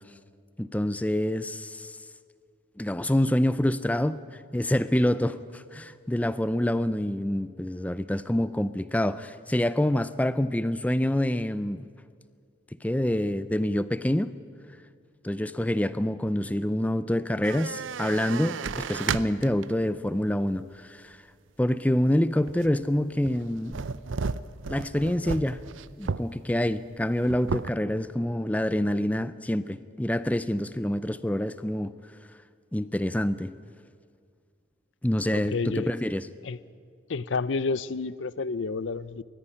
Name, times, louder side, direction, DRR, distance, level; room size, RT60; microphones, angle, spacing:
voice 1, 0.6-2.0 2.8-4.2 4.5-11.9 12.8-14.3 15.2-21.2 21.6-23.8 24.7-25.6 26.0-31.9 32.7-33.5 35.0-36.3, left 1 dB, 10° left, 14 dB, 0.4 m, -26 dB
sound 1, 17.4-19.8 20.4-20.5 22.5-22.8 23.3-26.3 26.7-26.8 27.0-27.7, right 5 dB, 85° right, 0.6 m, -33 dB
voice 2, 35.3-35.9 36.4-36.6 37.1-39.2, left 4 dB, 75° left, 18 dB, 0.6 m, -30 dB
20.0 x 14.0 x 9.9 m, 2.1 s
head